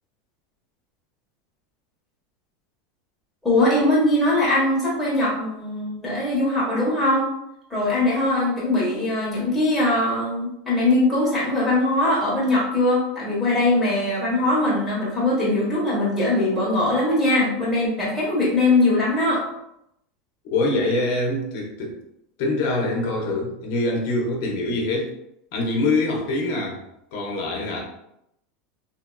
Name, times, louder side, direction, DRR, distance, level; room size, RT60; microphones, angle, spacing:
voice 1, 3.4-7.3 7.7-19.4, left 2 dB, 5° left, -8 dB, 1.2 m, -21 dB
voice 2, 20.4-22.0 22.4-25.1 25.5-26.8 27.1-27.8, left 2 dB, 65° left, 0 dB, 0.8 m, -24 dB
2.8 x 2.7 x 2.3 m, 0.81 s
supercardioid pair, 145°, 0 cm